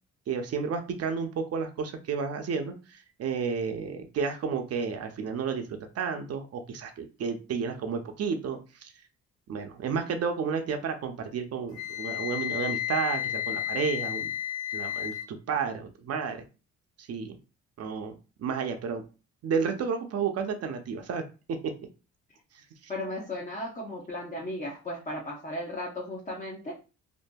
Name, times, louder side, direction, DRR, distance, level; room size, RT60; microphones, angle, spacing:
voice 1, 0.3-8.9 9.5-14.3 14.7-16.4 17.0-17.4 17.8-19.0 19.4-21.2, right 6 dB, 55° right, 6 dB, 0.5 m, -31 dB
Wind instrument woodwind instrument, 11.7-15.3, left 12 dB, 75° left, 0.5 m, -32 dB
voice 2, 22.9-26.7, left 1 dB, 25° left, -3 dB, 0.7 m, -35 dB
2.6 x 2.6 x 2.2 m, 0.33 s
cardioid pair, 90°, 30 cm